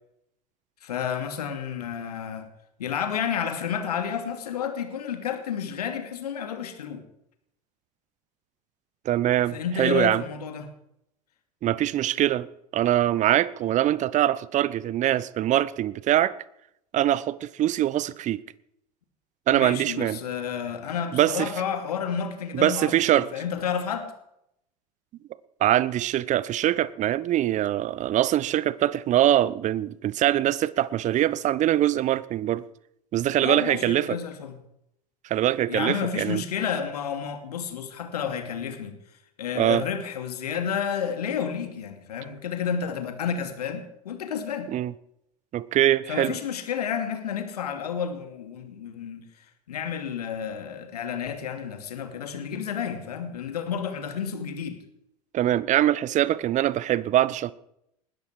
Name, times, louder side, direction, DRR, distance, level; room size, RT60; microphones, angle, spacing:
voice 1, 0.8-2.5 2.8-7.0 9.5-10.7 19.5-24.1 33.4-34.5 35.7-39.0 39.4-44.7 46.1-54.8, left 7 dB, 75° left, 2.5 m, -31 dB
voice 2, 9.0-10.2 11.6-12.5 12.7-16.3 16.9-18.4 19.5-20.2 21.1-21.5 22.5-23.3 25.6-32.7 33.1-34.2 35.3-36.4 39.5-39.8 44.7-44.9 45.5-46.3 55.3-57.5, right 12 dB, 40° right, 0.9 m, -23 dB
20.0 x 13.0 x 4.8 m
figure-of-eight pair, 80°, 20 cm